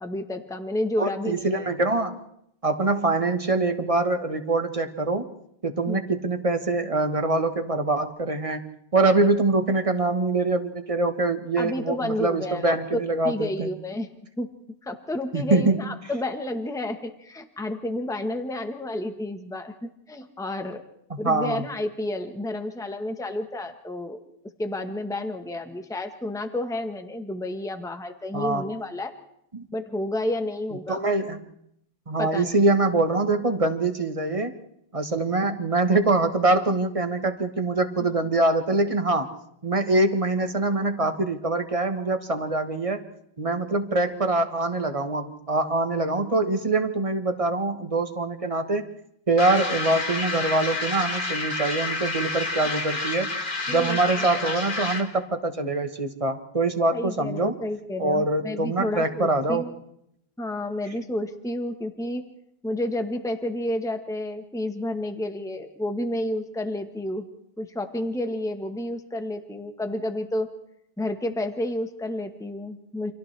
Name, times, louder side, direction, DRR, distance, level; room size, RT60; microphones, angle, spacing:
voice 1, 0.0-1.7 5.9-6.0 11.6-14.1 14.4-14.5 14.8-20.8 21.2-24.2 24.6-29.1 29.7-31.0 32.2-32.5 53.7-54.0 56.9-59.7 60.4-62.2 62.6-67.2 67.6-70.5 71.0-73.1, left 1 dB, 5° left, 6 dB, 1.2 m, -30 dB
voice 2, 1.0-2.2 2.6-5.3 5.6-8.6 8.9-13.7 15.3-15.8 21.1-21.7 28.3-28.6 29.5-29.6 30.9-31.4 32.1-34.6 34.9-39.3 39.6-43.0 43.4-48.9 49.3-53.3 53.7-57.5 58.0-59.6, right 2 dB, 35° right, 7 dB, 1.4 m, -24 dB
sound 1, 49.4-55.2, left 3 dB, 50° left, 2.3 m, -29 dB
29.5 x 26.5 x 3.3 m, 0.75 s
omnidirectional pair, 1.1 m